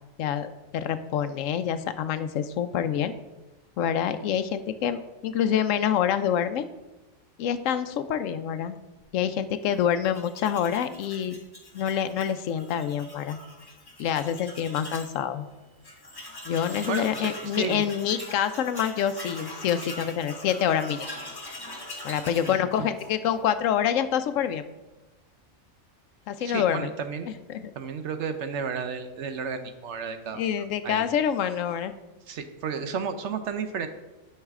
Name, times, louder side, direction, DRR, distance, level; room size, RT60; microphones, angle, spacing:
voice 1, 0.2-3.1 3.8-6.7 7.4-8.8 9.1-11.4 11.7-13.4 14.0-15.5 16.5-21.1 22.0-24.6 26.3-26.9 27.3-27.7 30.3-31.9, left 9 dB, 80° left, 11 dB, 0.9 m, -26 dB
Tools, 10.0-15.2 15.5-15.6 15.8-23.4, left 1 dB, 20° left, 1.2 m, -42 dB
voice 2, 16.9-17.9 22.5-22.9 26.4-27.3 27.8-30.4 30.8-31.0 32.3-33.9, right 6 dB, 65° right, 9 dB, 0.9 m, -32 dB
11.0 x 5.6 x 3.6 m, 1.1 s
omnidirectional pair, 1.4 m